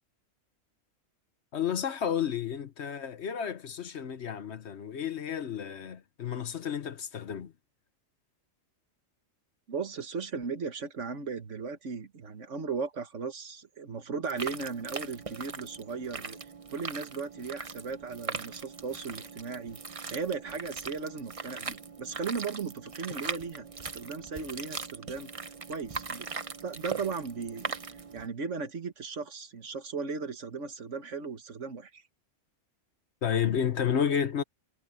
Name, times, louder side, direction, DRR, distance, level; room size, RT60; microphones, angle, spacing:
voice 1, 1.5-7.5 33.2-34.4, left 8 dB, 60° left, 1.2 m, -31 dB
voice 2, 9.7-19.8 20.1-25.3 25.7-26.3 26.6-32.0, right 5 dB, 65° right, 1.8 m, -37 dB
sound 1, 14.2-28.3, right 4 dB, 30° right, 0.9 m, -40 dB
omnidirectional pair, 1.3 m